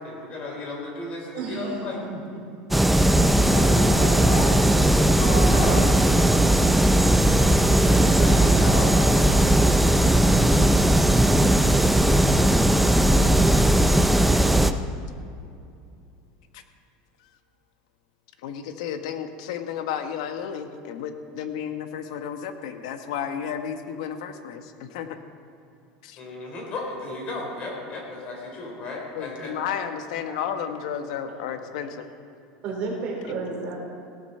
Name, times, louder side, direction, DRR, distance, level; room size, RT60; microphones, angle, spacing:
voice 1, 0.0-2.0 3.5-4.5 4.9-5.9 7.8-9.0 26.2-29.5, left 2 dB, 35° left, -1 dB, 3.7 m, -33 dB
voice 2, 1.3-2.4 5.1-5.7 30.3-30.4 32.6-33.7, right 4 dB, 45° right, -2 dB, 3.8 m, -33 dB
sound 1, 2.7-14.7, right 1 dB, ahead, 0.4 m, -18 dB
voice 3, 18.4-25.2 26.0-26.2 29.1-32.1, left 8 dB, 85° left, 7 dB, 1.1 m, -32 dB
17.0 x 12.0 x 4.4 m, 2.5 s
supercardioid pair, 160°, 3 cm